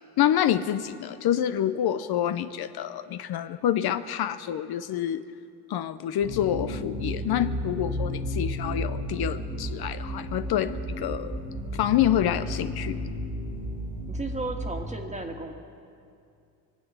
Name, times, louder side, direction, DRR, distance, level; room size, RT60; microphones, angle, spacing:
voice 1, 0.2-5.2 5.7-11.4 11.7-13.0, left 11 dB, 65° left, 11 dB, 0.6 m, -27 dB
sound 1, 6.2-14.8, equal, 85° right, 3.3 m, -33 dB
voice 2, 14.1-15.5, right 2 dB, 15° right, 3 dB, 1.6 m, -34 dB
24.0 x 8.1 x 7.1 m, 2.4 s
cardioid pair, 110°, 41 cm